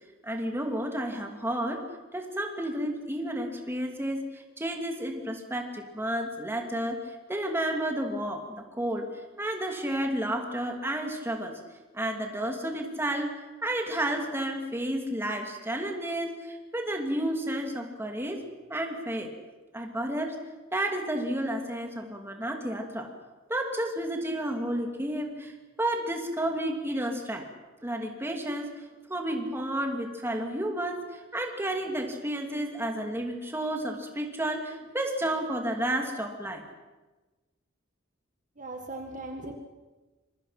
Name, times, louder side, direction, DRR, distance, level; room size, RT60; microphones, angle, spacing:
voice 1, 0.2-1.8 2.1-9.1 9.4-11.6 11.9-13.3 13.6-18.4 18.7-19.3 19.7-20.4 20.7-23.1 23.5-25.5 25.8-27.4 27.8-28.8 29.1-36.6, right 1 dB, 10° right, 2 dB, 2.7 m, -31 dB
voice 2, 38.6-39.5, right 2 dB, 40° right, 3 dB, 1.8 m, -38 dB
26.5 x 22.5 x 5.9 m, 1.2 s
head